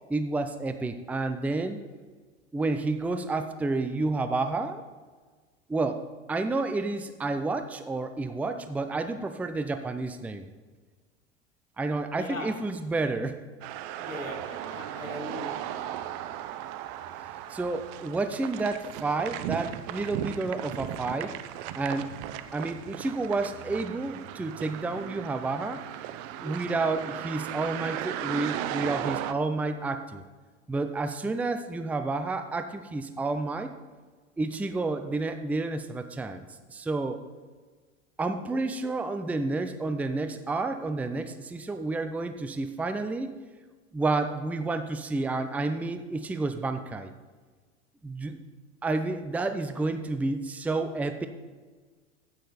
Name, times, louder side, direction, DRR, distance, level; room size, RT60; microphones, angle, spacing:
voice 1, 0.1-1.8 2.5-4.8 5.7-6.0 6.3-10.5 11.8-13.4 14.0-14.1 17.5-21.4 21.7-22.1 22.5-25.8 26.4-30.2 30.7-33.7 34.4-36.4 36.7-37.2 38.2-43.3 43.9-47.1 48.0-48.4 48.8-51.3, right 3 dB, 5° right, 8 dB, 0.5 m, -30 dB
voice 2, 12.1-12.6 14.0-16.0, left 2 dB, 85° left, 3 dB, 1.7 m, -40 dB
sound 1, 13.6-29.3, right 12 dB, 45° right, 0.7 m, -36 dB
15.5 x 6.4 x 4.2 m, 1.4 s
figure-of-eight pair, 85°, 38 cm